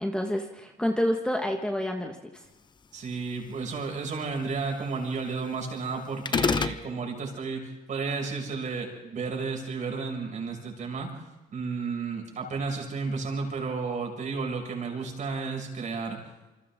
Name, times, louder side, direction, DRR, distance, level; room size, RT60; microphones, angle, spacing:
voice 1, 0.0-2.2, equal, 5° left, 2 dB, 1.7 m, -28 dB
voice 2, 2.9-11.1 11.5-16.2, right 4 dB, 45° right, 2 dB, 6.8 m, -32 dB
sound 1, 6.3-6.8, left 5 dB, 25° left, 0.9 m, -24 dB
27.5 x 25.0 x 3.8 m, 1.1 s
cardioid pair, 110°, 17 cm